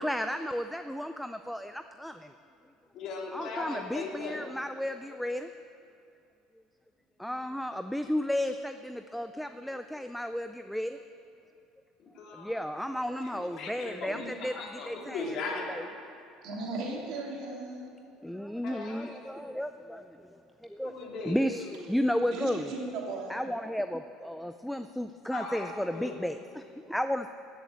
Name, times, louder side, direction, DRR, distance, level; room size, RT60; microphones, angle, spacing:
voice 1, 0.0-2.3 3.3-5.5 7.2-11.0 12.3-15.8 18.2-20.9 21.3-22.7 23.3-27.3, equal, ahead, 9 dB, 0.4 m, -33 dB
voice 2, 2.9-4.5 12.0-12.6 13.2-16.0 18.6-19.4 20.8-21.4 25.3-26.2, left 3 dB, 55° left, -1 dB, 2.9 m, -39 dB
voice 3, 16.4-17.9 22.2-23.3, right 2 dB, 60° right, -2 dB, 3.1 m, -36 dB
15.5 x 7.1 x 8.8 m, 2.6 s
supercardioid pair, 115°, 0 cm